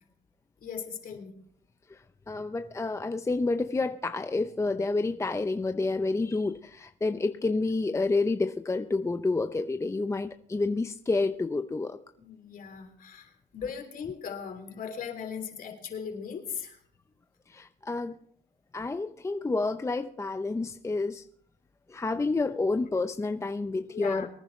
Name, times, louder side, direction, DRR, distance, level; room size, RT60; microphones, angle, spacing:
voice 1, 0.6-1.3 12.2-16.8 23.9-24.3, left 6 dB, 50° left, 5 dB, 3.3 m, -38 dB
voice 2, 1.9-12.0 17.5-18.2 18.7-21.2 21.9-24.3, left 3 dB, 15° left, 7 dB, 0.7 m, -29 dB
24.0 x 10.5 x 3.2 m, 0.64 s
cardioid pair, 95°, 19 cm